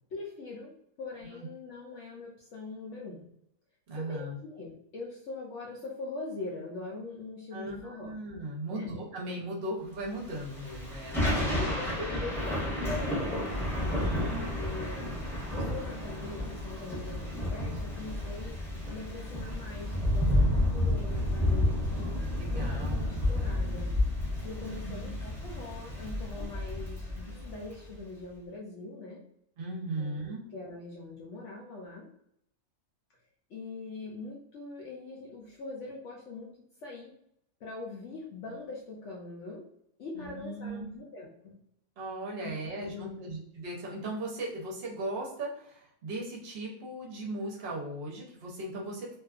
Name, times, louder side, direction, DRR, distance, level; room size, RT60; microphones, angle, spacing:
voice 1, 0.1-3.3 3.9-8.1 8.7-8.9 11.1-13.6 13.9-18.5 18.9-22.2 22.5-24.0 24.4-29.2 30.0-32.1 33.5-37.1 37.6-39.6 40.0-41.6 42.4-43.4, left 3 dB, 70° left, -2 dB, 0.7 m, -42 dB
voice 2, 3.9-4.4 7.5-11.5 13.8-14.4 22.4-23.0 24.6-25.1 29.6-30.4 40.1-40.9 42.0-49.2, right 1 dB, 50° right, -2 dB, 0.8 m, -38 dB
Thunder / Rain, 10.2-27.8, left 1 dB, ahead, 0.7 m, -31 dB
2.6 x 2.4 x 2.3 m, 0.73 s
omnidirectional pair, 1.7 m